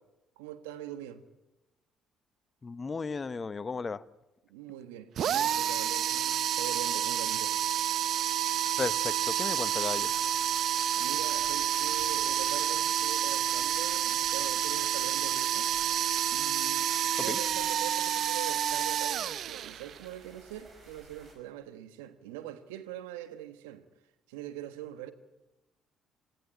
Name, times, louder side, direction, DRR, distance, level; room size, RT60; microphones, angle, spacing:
voice 1, 0.4-1.2 4.5-7.6 11.0-15.7 16.3-23.8 24.3-25.1, right 12 dB, 90° right, 1.3 m, -43 dB
voice 2, 2.6-4.0 8.8-10.2 17.2-17.4, left 4 dB, 35° left, 0.9 m, -35 dB
sound 1, 5.2-20.0, right 10 dB, 60° right, 0.7 m, -29 dB
sound 2, 9.2-21.4, right 3 dB, 45° right, 6.0 m, -56 dB
18.0 x 15.5 x 9.9 m
hypercardioid pair, 60°, 0 cm